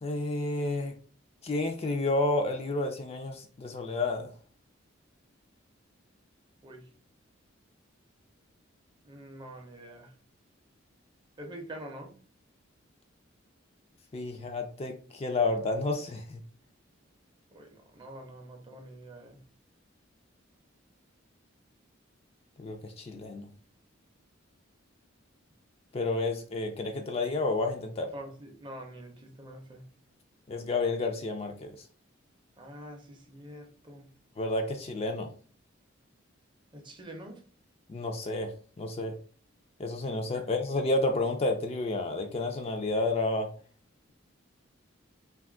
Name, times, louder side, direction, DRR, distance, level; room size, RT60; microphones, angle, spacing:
voice 1, 0.0-0.9 1.4-4.3 14.1-16.4 22.6-23.5 25.9-28.1 30.5-31.8 34.4-35.3 37.9-38.5 38.8-39.1 39.8-43.5, left 2 dB, 30° left, 4 dB, 0.3 m, -30 dB
voice 2, 9.0-10.1 11.4-12.1 17.5-19.4 28.1-29.9 32.6-34.1 36.7-37.4 40.3-40.5, right 1 dB, 25° right, 3 dB, 0.5 m, -45 dB
2.5 x 2.3 x 3.6 m, 0.42 s
head